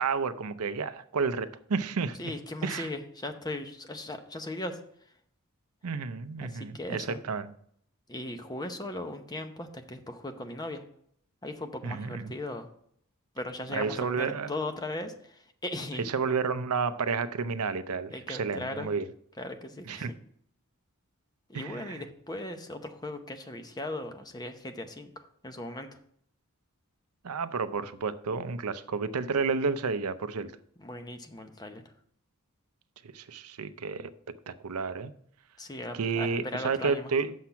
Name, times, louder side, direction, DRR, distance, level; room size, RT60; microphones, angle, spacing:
voice 1, 0.0-2.2 2.6-2.9 5.8-7.5 11.8-12.3 13.7-14.6 16.0-19.1 19.9-20.1 21.5-22.0 27.2-30.5 33.0-34.1 34.5-35.1 35.9-37.3, right 5 dB, 80° right, 0.6 m, -31 dB
voice 2, 2.2-4.8 6.4-7.2 8.1-10.8 11.4-12.7 13.4-16.1 18.1-18.9 19.4-20.2 21.5-26.0 30.8-31.8 35.6-37.1, left 1 dB, 20° left, 0.7 m, -38 dB
7.3 x 5.9 x 5.6 m
head